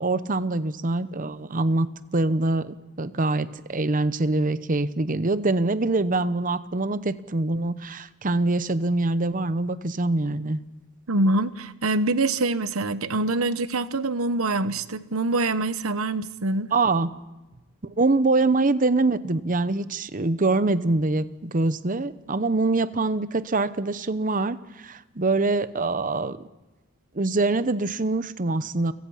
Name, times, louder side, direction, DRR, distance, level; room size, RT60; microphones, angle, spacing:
voice 1, 0.0-1.9 2.1-10.6 16.7-17.1 18.0-26.4 27.1-28.9, right 2 dB, 40° right, 14 dB, 0.9 m, -24 dB
voice 2, 11.1-16.7, right 2 dB, 80° right, 13 dB, 1.0 m, -25 dB
29.5 x 17.0 x 5.7 m, 1.1 s
head